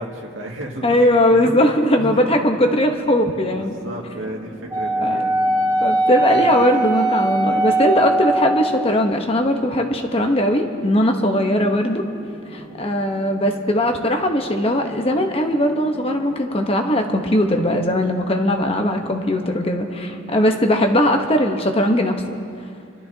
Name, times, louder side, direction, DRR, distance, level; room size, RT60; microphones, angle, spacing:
voice 1, 0.0-1.7 2.0-2.5 3.6-5.4, right 1 dB, 85° right, -1 dB, 2.0 m, -33 dB
voice 2, 0.8-3.7 5.0-5.2 5.8-12.0 12.5-22.2, left 1 dB, 30° left, 4 dB, 1.0 m, -19 dB
sound 1, 2.3-20.8, right 2 dB, 45° right, 2.3 m, -41 dB
Wind instrument woodwind instrument, 4.7-8.9, right 2 dB, 15° right, 2.3 m, -20 dB
27.5 x 13.0 x 2.8 m, 2.5 s
head